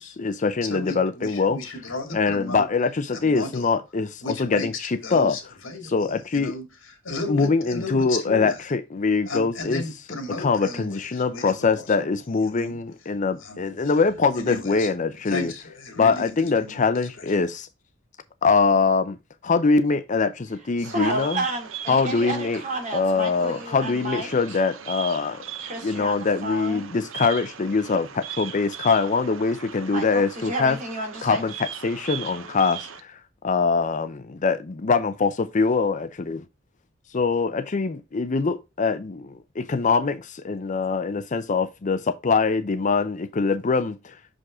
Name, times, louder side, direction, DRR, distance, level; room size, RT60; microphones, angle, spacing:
voice 1, 0.0-1.6 2.1-5.4 5.9-6.5 7.3-9.8 10.4-15.5 16.0-17.7 18.4-19.2 19.4-21.4 21.9-22.6 22.9-25.4 25.8-30.8 31.2-31.5 31.8-33.2 33.4-36.4 37.1-44.1, left 4 dB, 40° left, 0.5 m, -23 dB
voice 2, 0.6-2.7 3.1-3.7 4.2-8.6 9.2-12.1 12.4-12.8 13.4-14.0 14.3-14.9 15.3-17.3, left 3 dB, 70° left, 2.3 m, -35 dB
voice 3, 20.8-24.6 25.6-26.9 29.9-31.4, right 2 dB, 40° right, 2.7 m, -31 dB
Bird vocalization bird call bird song, 20.8-33.0, right 8 dB, 80° right, 0.8 m, -39 dB
6.2 x 5.2 x 3.6 m
head